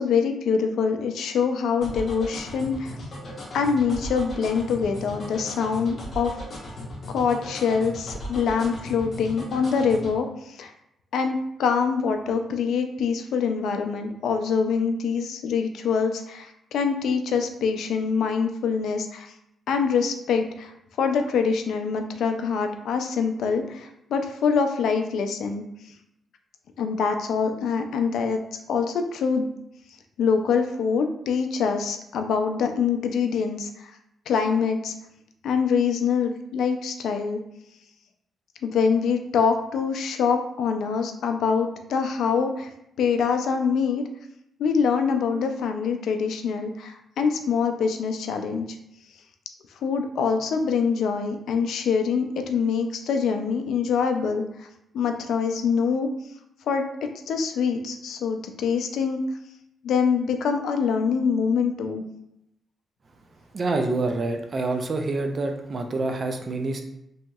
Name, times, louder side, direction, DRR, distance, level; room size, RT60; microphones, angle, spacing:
voice 1, 0.0-3.0 3.5-6.4 7.1-10.7 11.1-19.3 19.7-20.7 21.0-25.6 26.8-28.4 28.7-29.5 30.2-33.9 34.3-34.9 35.4-37.4 38.6-42.7 43.0-44.0 44.6-48.7 49.8-54.7 54.9-56.1 56.7-59.2 59.8-62.0, left 6 dB, 80° left, 6 dB, 0.3 m, -24 dB
sound 1, 1.8-10.1, left 1 dB, 45° left, 0.8 m, -37 dB
voice 2, 63.5-66.8, right 3 dB, 40° right, 5 dB, 0.4 m, -27 dB
2.9 x 2.7 x 2.2 m, 0.79 s
cardioid pair, 125°, 0 cm